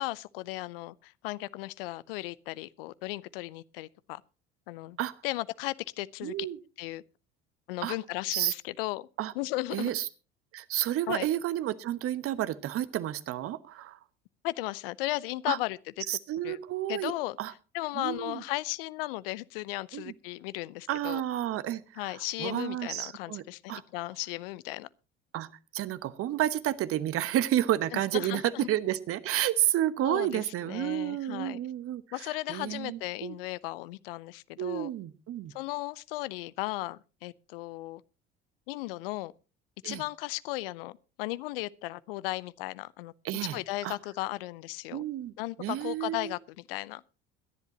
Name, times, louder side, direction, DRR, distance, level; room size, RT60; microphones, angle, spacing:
voice 1, 0.0-4.2 4.7-5.0 5.2-6.5 6.8-7.0 7.7-9.1 9.3-9.9 11.1-11.3 14.4-15.8 16.4-16.6 16.9-17.4 17.7-21.2 22.0-24.9 27.9-28.7 30.0-31.6 32.1-34.9 35.5-38.0 38.7-39.3 39.8-43.1 43.5-45.0 45.4-47.0, left 19 dB, 70° left, 0.7 m, -36 dB
voice 2, 6.2-6.6 7.8-7.9 8.3-8.5 9.2-9.3 9.7-10.1 10.5-14.0 15.5-15.6 16.1-17.1 17.4-17.5 18.0-18.4 19.9-20.1 20.9-23.4 23.7-23.8 25.3-25.5 25.7-28.4 28.7-32.0 32.5-33.3 34.6-35.5 39.8-40.0 43.2-44.0 44.9-45.3 45.6-46.3, right 13 dB, 50° right, 1.1 m, -31 dB
22.0 x 10.5 x 2.9 m
hypercardioid pair, 65°, 30 cm